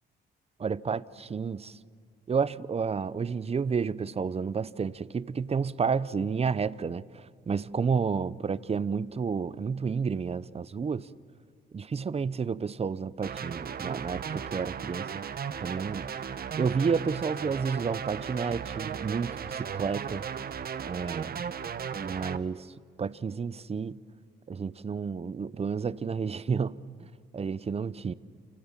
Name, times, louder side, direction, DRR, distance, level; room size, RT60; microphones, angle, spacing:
voice 1, 0.6-1.8 2.3-11.1 11.7-15.2 15.6-16.1 16.5-20.2 20.8-21.4 21.9-22.7 23.0-23.9 24.5-26.8 27.3-28.1, right 5 dB, 30° right, 0.8 m, -30 dB
sound 1, 13.2-22.4, right 7 dB, 50° right, 1.1 m, -36 dB
29.0 x 26.5 x 7.5 m
cardioid pair, 90°, 20 cm